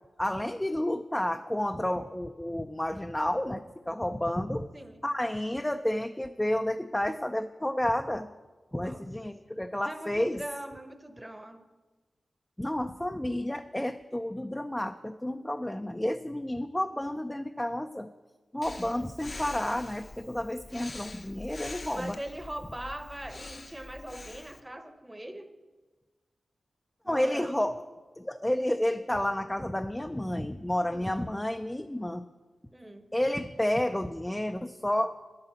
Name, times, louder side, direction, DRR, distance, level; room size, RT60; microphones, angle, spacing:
voice 1, 0.2-4.7 5.0-8.3 8.7-10.4 12.6-18.1 18.5-22.2 27.1-27.8 28.2-32.3 33.1-35.1, left 1 dB, 10° left, 7 dB, 0.4 m, -31 dB
voice 2, 4.7-5.0 8.7-9.0 9.8-11.6 21.9-25.5 27.0-27.7 30.9-31.1 32.7-33.1, right 1 dB, 15° right, 8 dB, 0.9 m, -41 dB
Breathing, 18.6-24.6, left 2 dB, 40° left, 0.7 m, -44 dB
9.8 x 8.8 x 7.5 m, 1.3 s
wide cardioid pair, 80°, 0 cm